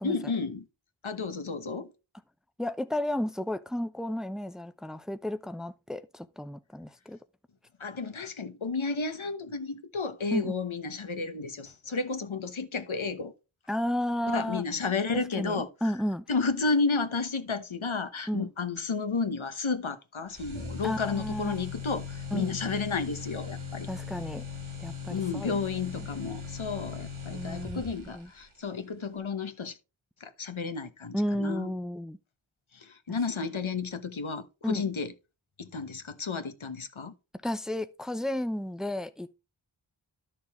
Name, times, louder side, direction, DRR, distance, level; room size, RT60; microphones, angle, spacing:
voice 1, 0.0-0.6 1.0-1.9 7.8-13.3 14.3-15.7 16.3-23.9 25.1-29.8 30.2-31.7 32.7-35.1 35.6-37.1, left 4 dB, 80° left, 1.2 m, -32 dB
voice 2, 2.6-7.2 10.3-10.5 13.7-14.6 15.1-16.2 18.3-18.5 20.8-21.6 22.3-22.5 23.9-24.4 24.8-25.6 26.0-26.1 27.3-28.3 31.1-32.2 34.6-34.9 37.4-39.3, left 1 dB, ahead, 0.7 m, -33 dB
sound 1, 20.3-28.3, left 4 dB, 85° right, 2.2 m, -39 dB
11.5 x 6.4 x 3.6 m
wide cardioid pair, 45°, 47 cm